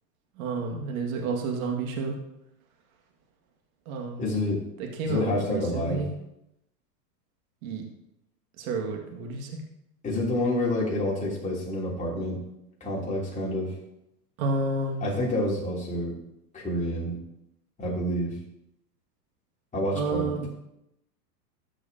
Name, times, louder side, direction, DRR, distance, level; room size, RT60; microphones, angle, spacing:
voice 1, 0.4-2.2 3.9-4.4 4.8-6.1 7.6-7.8 8.6-9.6 14.4-15.1 19.9-20.5, right 3 dB, 60° right, 1 dB, 2.2 m, -30 dB
voice 2, 4.2-4.6 5.0-6.0 10.0-12.4 12.8-13.7 15.0-16.1 16.5-17.2 17.8-18.3 19.7-20.5, left 1 dB, 15° left, -5 dB, 3.2 m, -28 dB
13.5 x 6.4 x 2.9 m, 0.85 s
hypercardioid pair, 125°, 49 cm